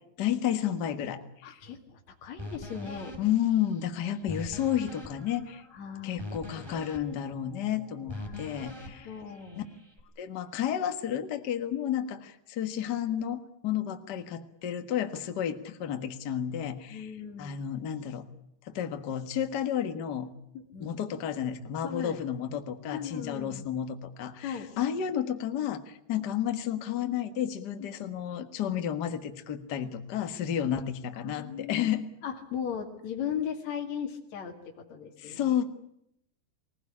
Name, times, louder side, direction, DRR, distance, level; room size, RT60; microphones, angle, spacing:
voice 1, 0.2-1.6 3.2-5.6 6.0-9.1 9.5-9.6 10.2-13.4 13.6-17.1 17.4-18.2 18.6-20.3 20.8-32.1 35.2-35.6, left 10 dB, 70° left, 7 dB, 1.0 m, -31 dB
voice 2, 1.4-3.2 5.7-6.2 8.2-9.6 16.9-17.5 20.5-20.9 21.8-22.2 22.9-23.7 24.4-24.7 27.8-27.9 31.1-31.9 32.2-35.6, left 8 dB, 50° left, 1 dB, 3.2 m, -38 dB
sound 1, 2.4-10.0, left 1 dB, 5° right, 3.0 m, -44 dB
24.5 x 17.5 x 10.0 m, 0.78 s
omnidirectional pair, 4.5 m